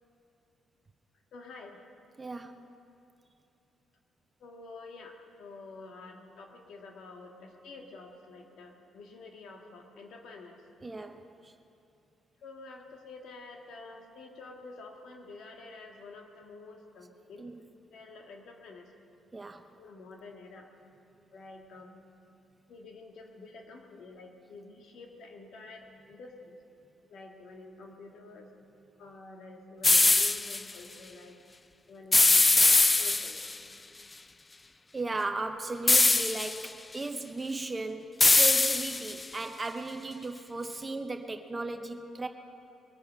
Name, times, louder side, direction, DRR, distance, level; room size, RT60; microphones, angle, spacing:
voice 1, 1.3-1.8 4.4-10.6 12.4-17.5 17.9-18.9 19.8-20.7 21.3-22.0 22.7-26.6 27.1-28.5 29.0-31.4 31.9-33.4, left 3 dB, 75° left, 2 dB, 2.0 m, -48 dB
voice 2, 2.2-2.6 10.8-11.5 17.4-17.6 19.3-19.7 34.9-42.3, right 3 dB, 20° right, 7 dB, 0.8 m, -36 dB
sound 1, 29.8-30.6 32.1-33.6 35.9-36.7 38.2-39.2, left 3 dB, 20° left, 0.4 m, -22 dB
21.5 x 9.0 x 6.0 m, 2.9 s
cardioid pair, 90°, 0 cm